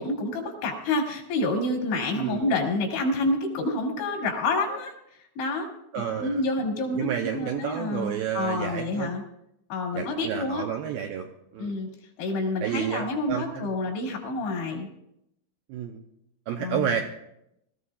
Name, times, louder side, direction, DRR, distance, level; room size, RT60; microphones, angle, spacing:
voice 1, 0.0-4.9 5.4-5.7 6.2-9.2 9.7-10.6 11.6-11.9 12.2-14.9 16.6-17.0, left 2 dB, 90° left, 1 dB, 4.7 m, -28 dB
voice 2, 2.1-2.5 5.9-6.4 7.0-9.1 9.9-11.3 11.5-11.8 12.6-13.7 15.7-16.0 16.5-17.0, right 9 dB, 85° right, 3 dB, 2.1 m, -30 dB
23.0 x 14.0 x 2.4 m, 0.80 s
omnidirectional pair, 5.0 m